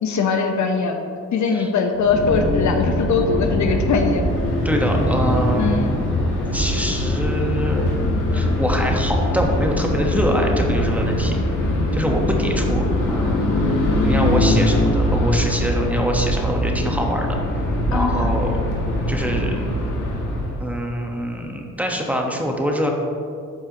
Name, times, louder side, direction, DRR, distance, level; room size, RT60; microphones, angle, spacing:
voice 1, 0.0-1.0 1.3-4.2 5.6-5.9 17.9-18.3, left 5 dB, 65° left, 5 dB, 0.8 m, -21 dB
sound 1, 2.0-20.7, left 1 dB, 85° left, 1.4 m, -22 dB
voice 2, 4.6-6.1 6.5-7.9 8.3-11.4 11.9-13.5 14.0-17.4 17.9-18.6 19.1-19.6 20.6-22.9, equal, 5° right, 0 dB, 1.1 m, -24 dB
12.0 x 4.4 x 2.9 m, 2.3 s
cardioid pair, 70°, 31 cm